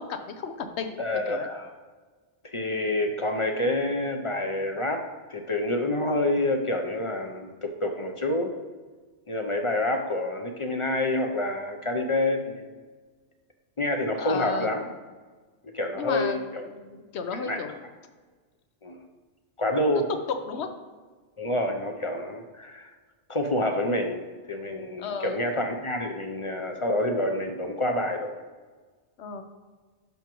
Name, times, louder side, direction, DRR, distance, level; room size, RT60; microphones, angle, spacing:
voice 1, 0.0-1.5 14.2-14.7 16.0-17.8 19.8-20.0 20.3-20.7 25.0-25.5 29.2-29.4, left 5 dB, 70° left, 7 dB, 1.0 m, -34 dB
voice 2, 1.0-1.7 2.4-8.5 9.3-12.7 13.8-14.9 15.6-16.6 17.3-17.6 18.8-19.0 19.6-20.1 21.4-22.9 23.3-28.4, left 1 dB, 40° left, 4 dB, 0.5 m, -28 dB
10.5 x 6.0 x 3.0 m, 1.4 s
omnidirectional pair, 1.2 m